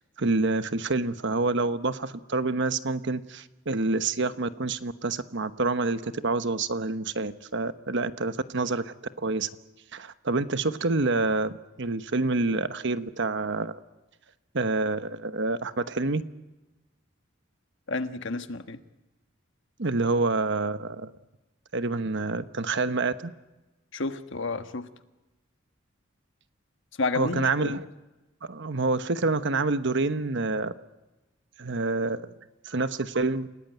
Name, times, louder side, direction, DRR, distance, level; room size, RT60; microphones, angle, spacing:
voice 1, 0.2-9.5 9.9-11.5 11.8-13.8 14.5-16.2 19.8-21.1 21.7-23.3 27.1-27.8 28.4-30.7 31.6-32.3 32.6-33.5, right 3 dB, 60° right, 12 dB, 1.1 m, -27 dB
voice 2, 17.9-18.8 23.9-24.9 27.0-27.8, left 3 dB, 65° left, 9 dB, 1.4 m, -31 dB
29.0 x 18.0 x 9.3 m, 1.1 s
head